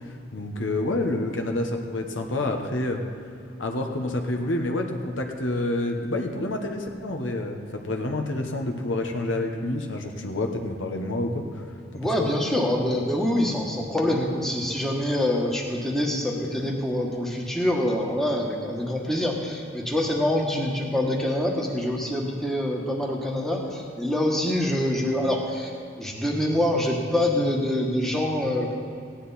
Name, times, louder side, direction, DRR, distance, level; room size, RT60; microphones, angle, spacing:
voice 1, 0.3-3.0 3.6-11.6 11.9-12.3, left 2 dB, 80° left, 4 dB, 1.1 m, -28 dB
voice 2, 11.9-25.7 26.0-28.7, left 1 dB, ahead, -1 dB, 1.4 m, -25 dB
16.0 x 10.0 x 4.2 m, 2.5 s
head